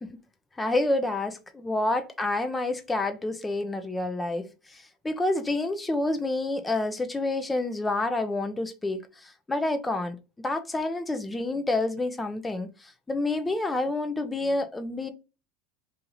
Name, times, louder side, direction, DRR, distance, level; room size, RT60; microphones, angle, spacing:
voice 1, 0.6-15.1, left 2 dB, 10° left, 0.7 m, -28 dB
2.8 x 2.8 x 3.8 m
supercardioid pair, 105°, 0 cm